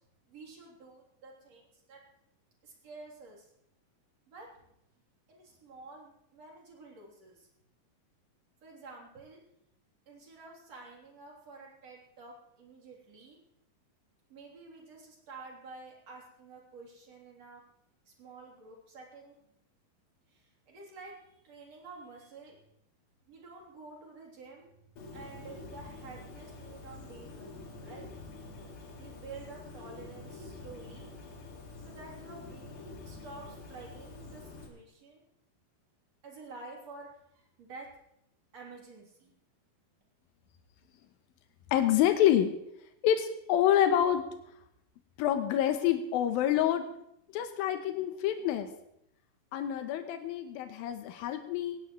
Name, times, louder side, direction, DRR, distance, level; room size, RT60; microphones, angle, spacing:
voice 1, 0.3-2.0 2.6-3.5 4.3-4.5 5.3-7.5 8.6-9.4 10.1-13.4 14.3-17.6 18.2-19.4 20.3-21.1 21.4-22.6 23.3-24.7 25.1-28.1 29.0-31.1 31.8-35.2 36.2-37.1 37.3-37.9 38.5-39.3, right 3 dB, 45° right, -2 dB, 4.5 m, -50 dB
Bird, 25.0-34.7, left 3 dB, 60° left, 3.7 m, -47 dB
voice 2, 41.7-42.5 43.0-44.3 45.2-46.9 47.3-48.7 49.5-51.8, left 11 dB, 85° left, 8 dB, 2.7 m, -27 dB
19.0 x 16.5 x 3.2 m, 0.76 s
omnidirectional pair, 4.1 m